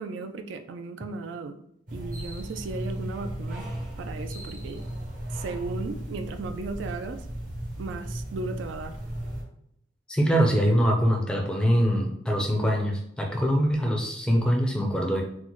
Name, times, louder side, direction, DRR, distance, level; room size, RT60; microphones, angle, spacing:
voice 1, 0.0-1.6 1.9-3.7 4.0-4.8 5.3-7.3 7.8-9.0, right 3 dB, 70° right, 8 dB, 0.3 m, -36 dB
sound 1, 1.9-9.4, right 1 dB, 40° right, 0.7 m, -35 dB
voice 2, 10.1-15.2, equal, 5° left, 0 dB, 0.4 m, -23 dB
3.8 x 2.1 x 3.0 m, 0.73 s
head